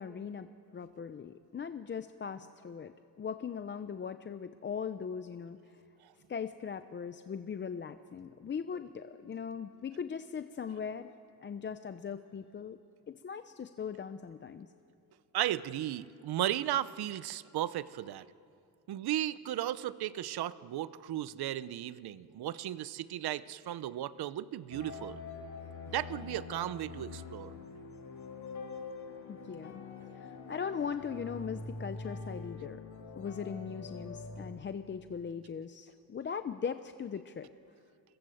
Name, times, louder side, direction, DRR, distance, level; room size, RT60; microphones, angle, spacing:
voice 1, 0.0-5.8 6.3-11.1 11.4-12.8 13.1-14.7 29.3-29.8 30.1-32.8 33.2-37.5, left 7 dB, 30° left, 10 dB, 0.6 m, -39 dB
voice 2, 15.3-18.3 18.9-25.2 25.9-27.5, right 12 dB, 70° right, 16 dB, 0.8 m, -35 dB
sound 1, 24.7-34.5, left 4 dB, 45° left, 3.7 m, -44 dB
28.5 x 22.0 x 7.8 m, 2.4 s
cardioid pair, 155°, 39 cm